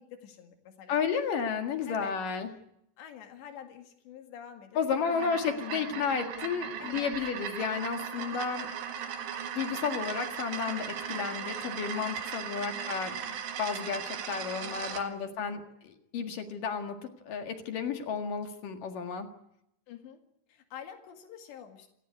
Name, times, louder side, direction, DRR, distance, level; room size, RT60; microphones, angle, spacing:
voice 1, 0.0-1.0 1.9-2.2 3.0-6.0 6.8-7.1 8.2-8.4 12.6-13.0 14.7-15.7 19.9-20.2 20.5-21.9, left 8 dB, 85° left, 5 dB, 4.3 m, -48 dB
voice 2, 0.9-2.5 4.8-8.7 9.6-13.2 13.6-19.3, left 6 dB, 60° left, 5 dB, 3.2 m, -32 dB
sound 1, 4.9-15.1, right 8 dB, 75° right, 3.9 m, -38 dB
28.5 x 15.5 x 9.6 m, 0.77 s
omnidirectional pair, 4.9 m